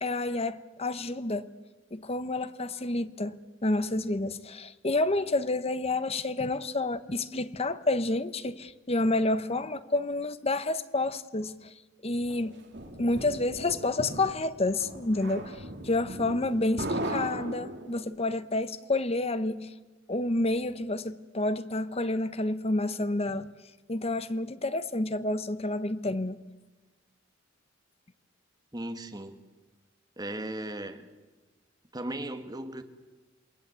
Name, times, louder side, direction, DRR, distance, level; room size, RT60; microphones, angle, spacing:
voice 1, 0.0-1.5 1.9-11.7 12.0-12.6 13.0-19.7 20.1-23.5 23.9-26.4, left 2 dB, 30° left, 1.0 m, -29 dB
sound 1, 12.3-18.2, right 1 dB, 55° right, 3.1 m, -37 dB
voice 2, 28.7-29.4 30.2-31.1 31.9-32.8, right 1 dB, 20° right, 1.8 m, -36 dB
28.0 x 20.5 x 8.2 m
head